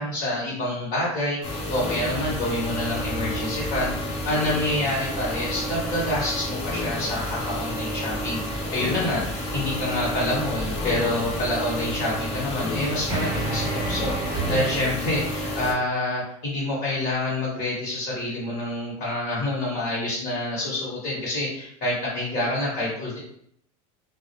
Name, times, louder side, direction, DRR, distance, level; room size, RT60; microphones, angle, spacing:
voice 1, 0.0-23.2, left 1 dB, 55° left, -5 dB, 1.1 m, -27 dB
sound 1, 1.4-15.7, left 1 dB, 30° left, 0.7 m, -30 dB
sound 2, 4.6-14.6, right 2 dB, 20° right, 0.6 m, -36 dB
2.2 x 2.0 x 2.7 m, 0.68 s
supercardioid pair, 125°, 19 cm